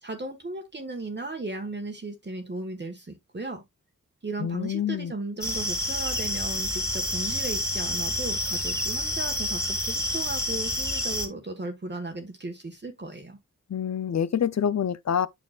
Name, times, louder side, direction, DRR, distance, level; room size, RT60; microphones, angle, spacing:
voice 1, 0.0-3.6 4.2-13.4, right 2 dB, 35° right, 1.5 m, -36 dB
voice 2, 4.4-5.1 13.7-15.3, left 8 dB, 55° left, 0.6 m, -26 dB
sound 1, 5.4-11.3, left 1 dB, 10° left, 2.7 m, -28 dB
9.1 x 6.0 x 2.4 m
wide cardioid pair, 85°, 32 cm